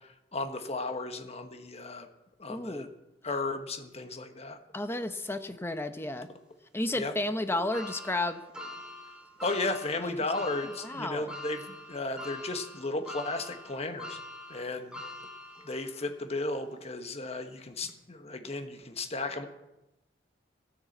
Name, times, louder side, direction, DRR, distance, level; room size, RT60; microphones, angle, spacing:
voice 1, 0.3-2.1 2.4-2.9 3.2-4.6 7.0-7.1 9.4-14.2 14.5-15.0 15.6-19.5, left 2 dB, 35° left, 6 dB, 1.4 m, -34 dB
voice 2, 2.5-2.9 4.7-6.3 6.7-8.4 10.0-10.1 10.6-11.3, left 2 dB, 15° left, 9 dB, 0.9 m, -32 dB
sound 1, 7.7-16.1 16.6-16.7 17.8-17.9, left 1 dB, 5° right, 2.2 m, -44 dB
14.5 x 10.0 x 8.0 m, 0.96 s
head